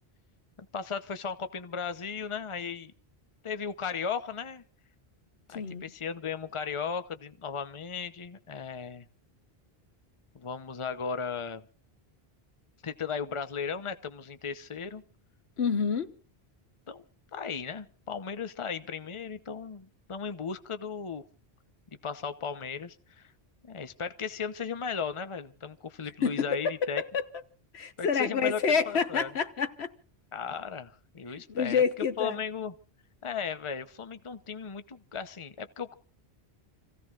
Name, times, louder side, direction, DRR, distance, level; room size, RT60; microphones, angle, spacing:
voice 1, 0.6-2.9 3.4-4.6 5.5-9.1 10.3-11.6 12.8-15.0 16.9-17.0 17.3-21.2 22.0-23.3 23.6-27.0 28.0-28.6 28.9-29.3 30.3-32.7 33.2-35.9, left 6 dB, 30° left, 0.9 m, -36 dB
voice 2, 15.6-16.1 26.2-27.2 27.7-29.9 31.3-32.4, left 6 dB, 80° left, 1.3 m, -28 dB
29.5 x 16.0 x 2.5 m
omnidirectional pair, 1.1 m